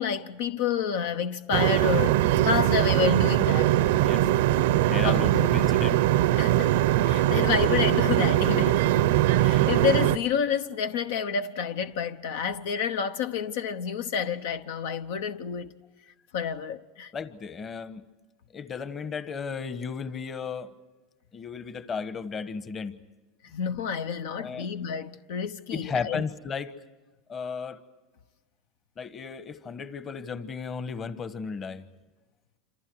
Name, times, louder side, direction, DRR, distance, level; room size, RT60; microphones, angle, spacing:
voice 1, 0.0-3.8 5.0-5.5 6.4-6.7 7.0-8.9 9.4-15.7 16.3-17.1 23.5-26.2, left 7 dB, 75° left, 1.0 m, -29 dB
sound 1, 1.5-10.2, right 14 dB, 80° right, 0.7 m, -22 dB
voice 2, 4.0-4.3 4.9-6.0 17.1-18.1 18.5-20.7 21.3-22.9 24.4-24.7 25.7-26.7 27.3-27.8 29.0-31.8, left 5 dB, 30° left, 1.2 m, -34 dB
27.5 x 27.0 x 4.8 m
supercardioid pair, 120°, 0 cm